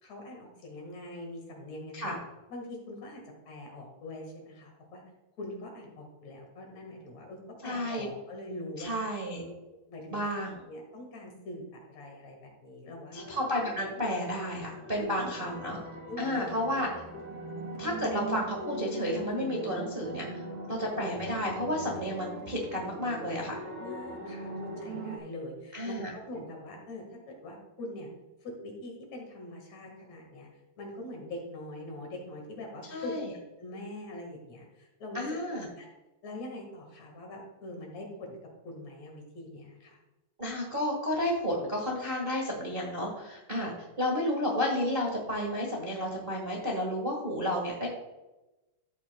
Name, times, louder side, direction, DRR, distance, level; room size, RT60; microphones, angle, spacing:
voice 1, 0.0-2.2 2.5-5.0 5.4-9.0 9.9-10.2 10.7-13.2 14.9-15.5 16.1-16.9 23.8-28.1 28.4-30.5 30.8-33.2 33.6-35.2 35.5-35.9 36.2-38.4 38.6-40.0, left 1 dB, 55° left, 1 dB, 2.9 m, -43 dB
voice 2, 7.6-8.1 8.8-9.4 10.1-10.6 13.1-15.8 16.2-16.9 17.8-20.2 20.7-23.5 25.7-26.1 32.9-33.3 35.1-35.7 40.4-43.7 44.0-47.9, left 1 dB, 30° right, -2 dB, 0.9 m, -31 dB
sound 1, 13.2-25.2, right 1 dB, 60° right, 3.2 m, -41 dB
13.0 x 8.5 x 2.3 m, 1.0 s
omnidirectional pair, 3.8 m